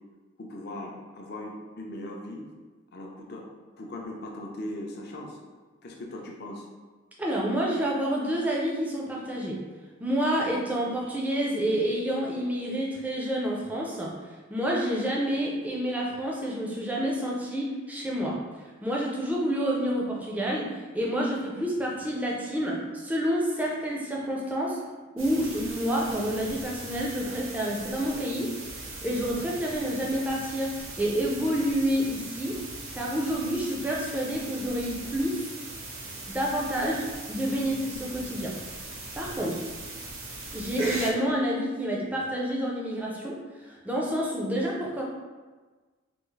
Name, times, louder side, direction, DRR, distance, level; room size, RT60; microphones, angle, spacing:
voice 1, 0.4-2.5 2.9-3.5 3.8-5.4 5.8-6.7, left 1 dB, 50° left, 0 dB, 0.5 m, -39 dB
voice 2, 7.2-9.6 10.0-18.4 18.8-24.8 25.1-28.5 29.0-32.6 32.9-35.5 36.3-38.5 39.1-39.6 40.5-45.0, equal, 10° right, -3 dB, 0.4 m, -29 dB
sound 1, 25.2-41.1, right 2 dB, 80° right, 0.7 m, -40 dB
3.5 x 2.3 x 3.1 m, 1.3 s
head